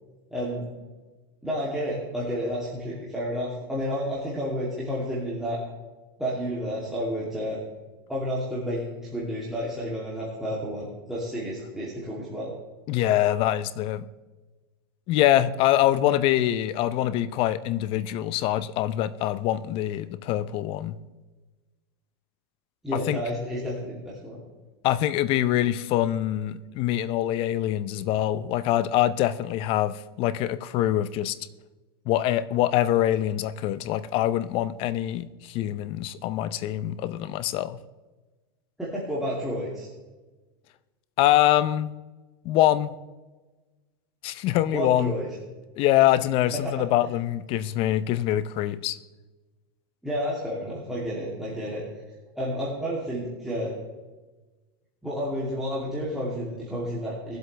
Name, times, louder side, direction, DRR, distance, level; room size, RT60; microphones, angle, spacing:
voice 1, 0.3-0.7 1.4-5.6 6.2-7.6 8.1-12.5 22.8-24.4 38.8-39.9 44.7-45.3 50.0-51.8 52.3-53.7 55.0-57.4, equal, 5° right, -7 dB, 2.8 m, -30 dB
voice 2, 12.9-14.1 15.1-21.0 22.9-23.2 24.8-31.4 32.1-37.8 41.2-41.9 42.4-42.9 44.2-45.1 45.8-49.0, left 13 dB, 45° left, 15 dB, 0.7 m, -24 dB
21.5 x 7.9 x 3.3 m, 1.2 s
supercardioid pair, 125°, 13 cm